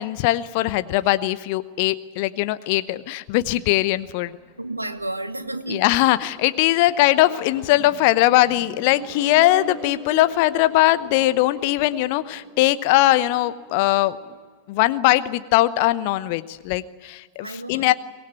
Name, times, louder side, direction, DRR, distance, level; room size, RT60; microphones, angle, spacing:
voice 1, 0.0-4.4 5.7-14.2 14.7-17.9, left 16 dB, 45° left, 0.8 m, -20 dB
Accelerating revving vroom, 4.0-14.5, right 2 dB, 20° left, 7.9 m, -42 dB
voice 2, 4.6-6.0 17.4-17.9, right 2 dB, 85° right, 1.1 m, -31 dB
24.0 x 18.5 x 9.2 m
figure-of-eight pair, 90°, 0 cm